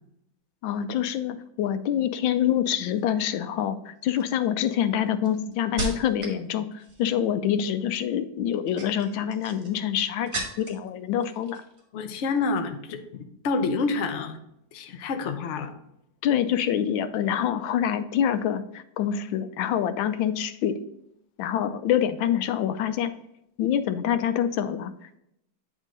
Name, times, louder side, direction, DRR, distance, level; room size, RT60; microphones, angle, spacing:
voice 1, 0.6-11.6 16.2-20.8 21.4-23.1 23.6-24.9, left 9 dB, 90° left, 11 dB, 1.4 m, -26 dB
sound 1, 2.9-3.3 4.0-6.4 6.7-7.2 8.5-10.9 11.2-11.9 12.1-12.4, right 3 dB, 50° right, 1.7 m, -37 dB
voice 2, 11.9-14.4 14.7-15.7, left 4 dB, 65° left, 6 dB, 0.7 m, -28 dB
8.9 x 3.6 x 3.8 m, 0.79 s
omnidirectional pair, 2.1 m